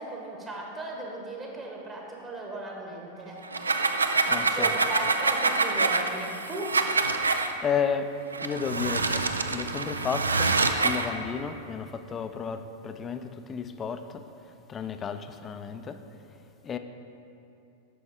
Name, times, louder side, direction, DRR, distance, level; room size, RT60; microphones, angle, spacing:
voice 1, 0.0-3.4 4.3-6.7, right 1 dB, 20° right, -1 dB, 1.2 m, -37 dB
sound 1, 3.4-7.5 8.3-11.1, right 3 dB, 75° right, 0.3 m, -26 dB
voice 2, 4.3-4.7 7.1-14.2 14.7-16.0 16.6-16.8, left 6 dB, 25° left, 9 dB, 0.4 m, -33 dB
8.9 x 6.1 x 3.6 m, 2.7 s
figure-of-eight pair, 90°, 0 cm